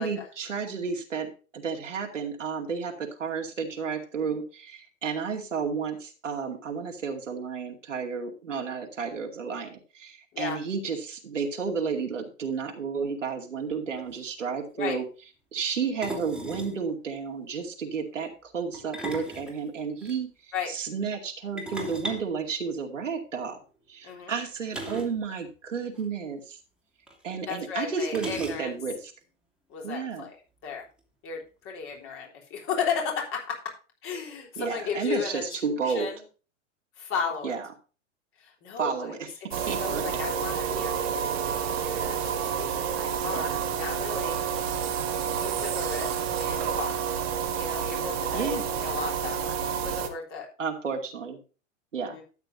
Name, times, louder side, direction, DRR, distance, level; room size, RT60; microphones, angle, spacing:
voice 1, 0.0-15.0 15.5-20.3 20.7-23.6 23.9-26.6 27.2-29.1 29.8-30.2 34.6-36.1 37.4-37.7 38.8-40.2 43.3-43.5 48.3-48.7 50.6-51.4 51.9-52.2, right 5 dB, 70° right, 2 dB, 2.4 m, -32 dB
sound 1, 13.7-13.8 14.0-14.2 16.0-16.8 18.7-20.2 21.6-23.2 24.7-25.2 25.5-25.6 25.9-26.1 27.1-27.2 28.1-28.9, right 1 dB, ahead, 2.5 m, -37 dB
voice 2, 24.0-24.3 27.5-28.7 29.7-30.8 31.2-33.6 34.0-36.2 37.0-37.6 38.4-39.2 39.8-44.4 45.4-47.1 47.6-49.6 49.8-50.5 52.0-52.2, left 6 dB, 35° left, 0 dB, 3.7 m, -35 dB
sound 2, 39.5-50.1, right 8 dB, 55° right, 1.7 m, -29 dB
13.0 x 9.1 x 2.7 m, 0.35 s
figure-of-eight pair, 95°, 38 cm